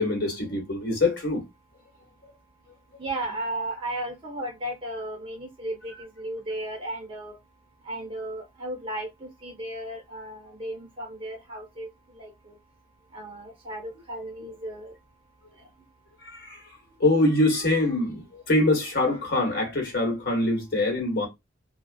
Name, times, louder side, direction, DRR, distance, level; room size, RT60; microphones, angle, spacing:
voice 1, 0.0-1.4 16.2-21.3, left 2 dB, 60° left, 1.3 m, -24 dB
voice 2, 3.0-7.3 7.8-11.9 12.2-12.6 13.1-14.9, right 1 dB, 30° right, 1.1 m, -35 dB
2.4 x 2.3 x 2.2 m
head